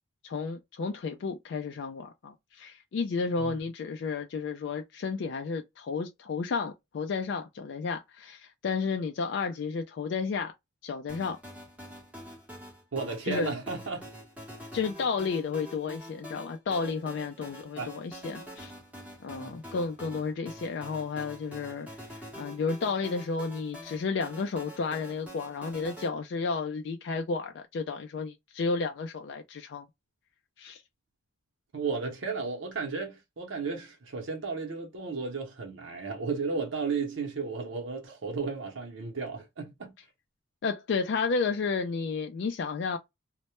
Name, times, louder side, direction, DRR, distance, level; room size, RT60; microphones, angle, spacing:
voice 1, 0.2-10.5 10.8-11.4 13.3-13.5 14.7-18.7 19.2-21.9 22.1-29.9 30.6-30.8 40.6-43.0, left 4 dB, 65° left, 0.3 m, -32 dB
sound 1, 11.1-26.1, equal, 5° right, 0.8 m, -46 dB
voice 2, 12.9-14.1 17.8-17.9 19.4-19.6 31.7-39.9, right 4 dB, 80° right, 0.7 m, -34 dB
2.1 x 2.1 x 2.8 m
head